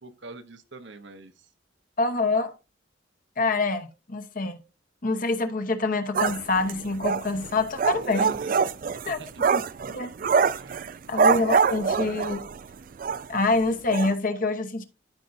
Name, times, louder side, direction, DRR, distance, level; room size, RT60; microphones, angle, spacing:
voice 1, 0.0-1.5 8.0-8.6 9.0-9.3 10.6-10.9, right 3 dB, 70° right, 0.9 m, -46 dB
voice 2, 2.0-2.5 3.4-4.6 5.0-8.4 9.0-9.2 9.5-9.6 9.9-10.1 11.1-12.4 13.3-14.8, left 3 dB, 45° left, 1.0 m, -26 dB
sound 1, 6.2-12.6 13.0-13.3 13.5-13.6 13.9-14.1, right 5 dB, 45° right, 0.4 m, -24 dB
13.5 x 5.3 x 2.6 m
head